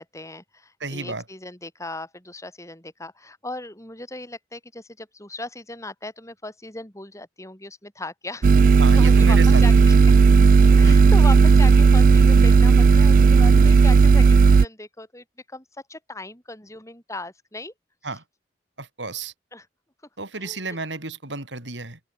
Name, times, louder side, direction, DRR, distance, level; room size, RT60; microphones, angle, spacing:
voice 1, 0.0-10.1 10.8-17.7 19.5-19.7 20.3-20.8, left 2 dB, 15° left, 7.8 m, -37 dB
voice 2, 0.8-1.2 8.8-9.9 10.8-11.0 18.0-18.2 18.8-19.3 20.2-22.0, right 3 dB, 85° right, 5.2 m, -32 dB
sound 1, 8.4-14.7, right 4 dB, 50° right, 0.3 m, -14 dB
open air
head